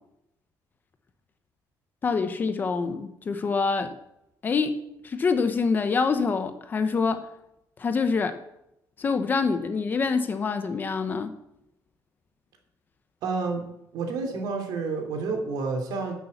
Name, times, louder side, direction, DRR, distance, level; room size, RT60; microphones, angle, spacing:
voice 1, 2.0-3.9 4.4-4.8 5.0-7.3 7.8-8.3 9.0-11.3, left 4 dB, 25° left, 8 dB, 0.9 m, -25 dB
voice 2, 13.2-13.7 13.9-16.1, right 4 dB, 70° right, 3 dB, 3.1 m, -29 dB
12.0 x 7.0 x 8.1 m, 0.82 s
cardioid pair, 175°, 7 cm